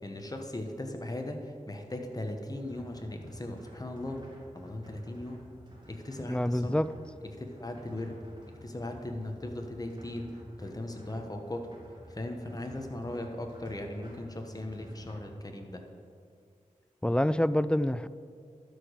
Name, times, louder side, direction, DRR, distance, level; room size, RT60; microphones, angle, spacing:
voice 1, 0.0-1.4 1.7-4.2 4.5-5.4 5.9-6.8 7.2-8.2 8.6-10.3 10.6-11.7 12.1-15.8, left 1 dB, 30° left, 4 dB, 1.3 m, -38 dB
sound 1, 2.6-15.2, equal, 35° right, 2.4 m, -52 dB
voice 2, 6.3-6.9 17.0-18.1, left 1 dB, 5° left, 15 dB, 0.3 m, -26 dB
12.0 x 5.1 x 6.5 m, 2.3 s
cardioid pair, 50°, 14 cm